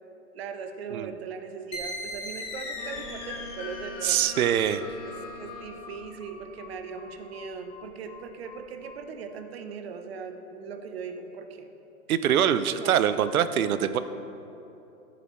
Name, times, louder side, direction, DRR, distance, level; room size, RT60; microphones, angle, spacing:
voice 1, 0.3-4.2 5.1-11.7 12.7-13.0, right 5 dB, 45° right, 7 dB, 0.8 m, -39 dB
sound 1, 1.7-9.0, left 2 dB, 15° left, 1.1 m, -40 dB
Wind instrument woodwind instrument, 2.7-6.3, left 6 dB, 85° left, 0.7 m, -44 dB
voice 2, 4.0-4.8 12.1-14.0, right 9 dB, 75° right, 13 dB, 0.6 m, -24 dB
13.5 x 7.0 x 3.1 m, 2.9 s
hypercardioid pair, 155°, 43 cm